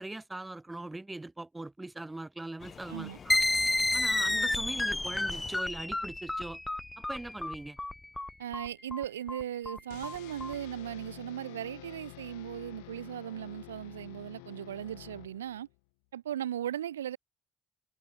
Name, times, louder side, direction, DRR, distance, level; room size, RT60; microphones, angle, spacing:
voice 1, 0.0-3.4 3.9-6.6 7.0-7.8, right 2 dB, 15° right, 1.1 m, -41 dB
sound 1, 2.6-5.6, left 6 dB, 45° left, 0.9 m, -49 dB
sound 2, 3.3-10.5, left 2 dB, 15° left, 0.7 m, -31 dB
voice 2, 8.4-15.7 16.1-17.2, right 11 dB, 90° right, 0.5 m, -37 dB
sound 3, 9.9-15.8, left 32 dB, 80° left, 3.0 m, -49 dB
hypercardioid pair, 50°, 0 cm